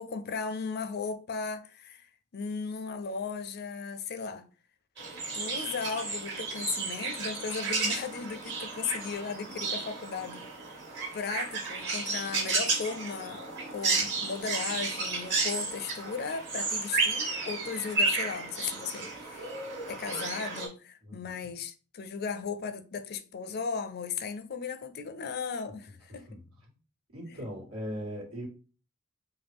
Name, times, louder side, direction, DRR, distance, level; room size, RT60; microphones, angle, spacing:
voice 1, 0.0-4.5 5.3-10.5 11.1-19.6 19.9-26.4 27.3-27.4, left 5 dB, 45° left, 0.5 m, -36 dB
sound 1, 5.0-20.7, right 3 dB, 55° right, 2.0 m, -33 dB
voice 2, 21.0-21.3 26.1-26.7 27.1-28.5, equal, 75° right, 2.1 m, -40 dB
5.2 x 2.4 x 3.5 m
head